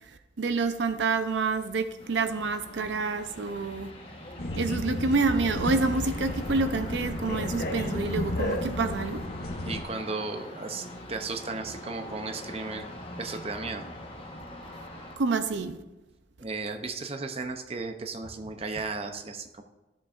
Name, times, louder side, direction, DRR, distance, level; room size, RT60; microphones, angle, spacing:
voice 1, 0.4-3.9 4.6-9.2 15.2-15.8, right 4 dB, 75° right, 0.6 m, -28 dB
sound 1, 2.0-15.2, left 1 dB, 30° left, 1.2 m, -43 dB
sound 2, 4.4-9.8, left 1 dB, 55° left, 0.8 m, -32 dB
voice 2, 9.6-12.9 13.2-13.9 16.4-19.6, right 3 dB, 30° right, 0.5 m, -35 dB
13.5 x 7.0 x 2.5 m
head